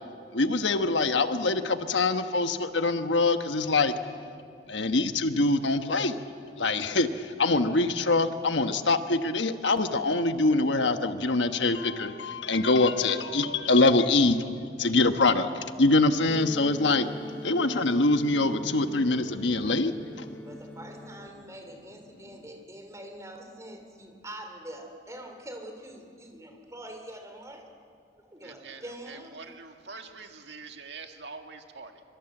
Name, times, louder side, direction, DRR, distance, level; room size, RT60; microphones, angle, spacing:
voice 1, 0.3-3.9 4.7-6.2 6.6-14.5 14.8-17.1 17.4-20.3, left 2 dB, 85° left, 8 dB, 1.2 m, -24 dB
sound 1, 16.3-21.3, left 1 dB, 5° left, 1.0 m, -42 dB
voice 2, 20.4-27.7 28.3-29.4, right 1 dB, 15° right, 4 dB, 3.1 m, -44 dB
voice 3, 28.4-32.0, right 4 dB, 75° right, 4 dB, 2.0 m, -45 dB
25.0 x 24.0 x 7.8 m, 2.3 s
head